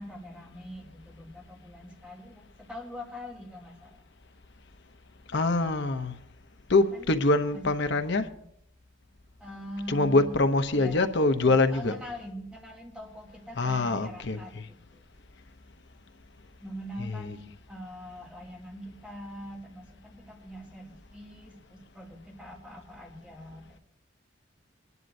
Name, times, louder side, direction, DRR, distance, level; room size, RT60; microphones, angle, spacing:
voice 1, 0.0-4.1 6.8-7.1 7.5-8.4 9.4-10.4 10.7-11.0 11.4-15.1 16.6-23.8, equal, 5° right, 2.4 m, -43 dB
voice 2, 5.3-6.1 6.7-8.2 9.9-11.9 13.6-14.4, left 2 dB, 60° left, 0.8 m, -24 dB
25.0 x 11.0 x 2.7 m
head